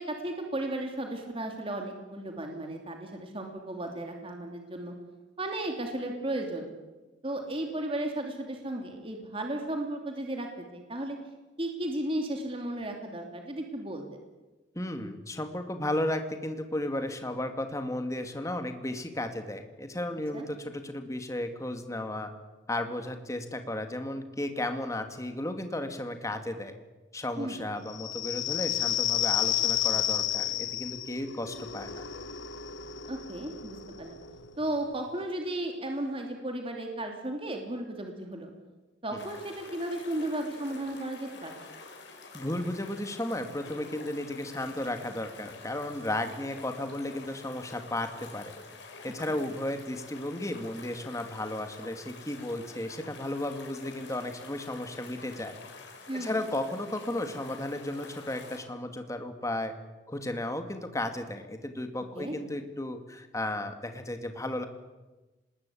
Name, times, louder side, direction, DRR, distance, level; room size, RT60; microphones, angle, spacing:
voice 1, 0.0-4.9 5.4-6.7 7.2-10.5 10.7-11.2 11.6-14.0 20.3-20.5 27.4-27.7 33.1-34.2 34.6-38.5 39.0-41.5 56.1-56.3 62.1-62.3, right 1 dB, 30° right, 3 dB, 2.9 m, -34 dB
voice 2, 14.8-22.3 22.7-26.8 27.1-32.1 39.1-39.2 42.3-48.6 49.0-55.6 56.1-59.7 60.1-64.6, left 1 dB, 15° left, 7 dB, 2.1 m, -34 dB
sound 1, 27.9-35.2, left 11 dB, 85° left, 1.2 m, -31 dB
sound 2, 39.2-58.6, left 3 dB, 65° left, 5.3 m, -48 dB
26.0 x 20.5 x 8.5 m, 1.1 s
head